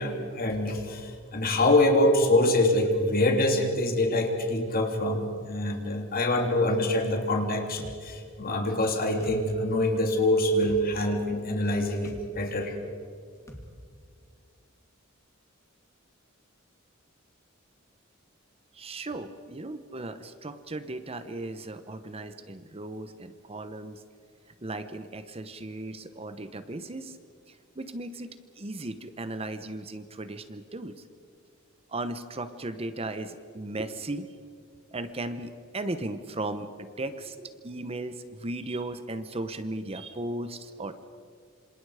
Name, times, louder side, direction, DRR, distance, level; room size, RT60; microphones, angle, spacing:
voice 1, 0.0-12.7, left 1 dB, 45° left, 3 dB, 3.2 m, -25 dB
sound 1, 7.8-8.0 9.2-9.4 10.6-10.8 12.1-12.2 13.5-13.7, equal, 15° left, 2.6 m, -43 dB
voice 2, 18.7-24.0 24.6-27.2 27.5-28.3 28.6-31.0 31.9-34.3 34.9-41.1, right 2 dB, 30° right, 10 dB, 0.9 m, -36 dB
27.5 x 26.5 x 5.0 m, 2.1 s
head